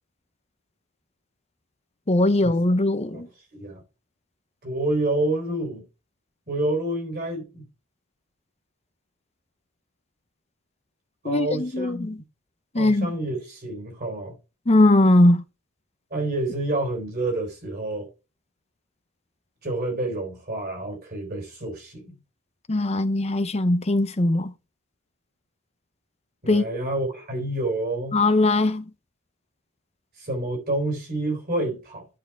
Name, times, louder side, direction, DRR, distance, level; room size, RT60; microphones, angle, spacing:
voice 1, 2.1-3.3 11.2-12.2 12.7-13.1 14.7-15.4 22.7-24.5 26.5-26.7 28.1-28.9, left 2 dB, 30° left, 0.7 m, -20 dB
voice 2, 3.1-3.8 4.6-5.9 6.5-7.6 11.2-12.1 12.7-14.4 16.1-18.1 19.6-22.2 26.4-28.2 30.2-32.1, right 2 dB, 45° right, 3.7 m, -28 dB
10.5 x 4.6 x 4.7 m
head